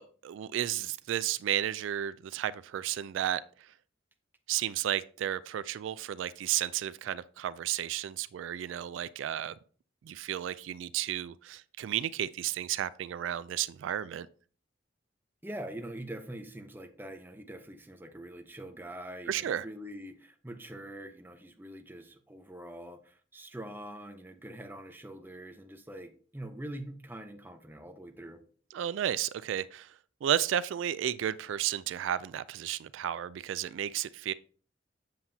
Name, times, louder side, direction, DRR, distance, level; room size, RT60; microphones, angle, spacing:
voice 1, 0.0-3.7 4.5-9.5 10.0-14.3 19.3-19.7 28.7-34.3, right 11 dB, 80° right, 0.3 m, -33 dB
voice 2, 15.4-28.4, right 1 dB, 10° right, 0.8 m, -44 dB
7.7 x 7.1 x 2.7 m
head